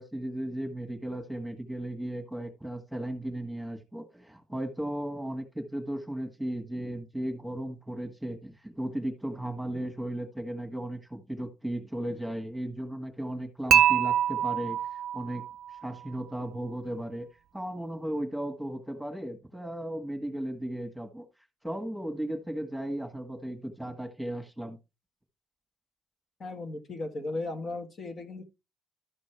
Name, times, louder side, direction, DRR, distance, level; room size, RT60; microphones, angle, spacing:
voice 1, 0.0-15.4 15.7-17.3 17.5-21.3 21.6-24.8, right 1 dB, 5° right, 1.7 m, -35 dB
Dishes pots and pans / Chink clink, 13.7-15.8, right 10 dB, 65° right, 0.4 m, -25 dB
voice 2, 26.4-28.4, left 2 dB, 50° left, 1.6 m, -36 dB
13.0 x 5.3 x 3.3 m
cardioid pair, 90°, 0 cm